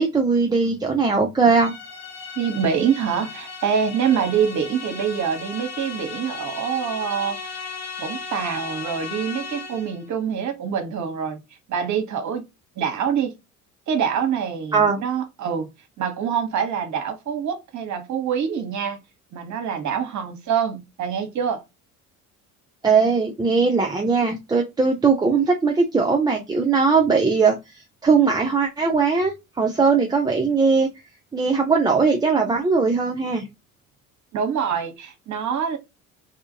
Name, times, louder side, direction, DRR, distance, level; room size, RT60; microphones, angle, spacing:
voice 1, 0.0-1.7 14.7-15.0 22.8-27.6 28.0-30.9 31.3-33.5, right 4 dB, 10° right, 0.4 m, -19 dB
sound 1, 1.6-10.0, left 5 dB, 60° left, 1.1 m, -36 dB
voice 2, 2.4-7.7 8.0-11.4 11.7-12.5 12.8-13.3 13.9-15.7 16.0-19.0 19.3-21.6 34.3-35.8, right 7 dB, 45° right, 1.0 m, -25 dB
2.7 x 2.4 x 2.7 m
hypercardioid pair, 60°, 42 cm